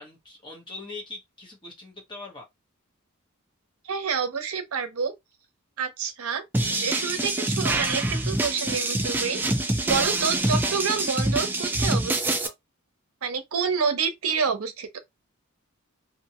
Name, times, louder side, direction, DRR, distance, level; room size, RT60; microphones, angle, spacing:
voice 1, 0.0-2.4, left 3 dB, 20° left, 1.0 m, -41 dB
voice 2, 3.8-5.2 5.8-9.6 9.8-12.5 13.2-15.0, right 6 dB, 80° right, 0.6 m, -28 dB
sound 1, 6.5-12.5, right 2 dB, 10° right, 0.3 m, -25 dB
2.6 x 2.2 x 2.8 m
head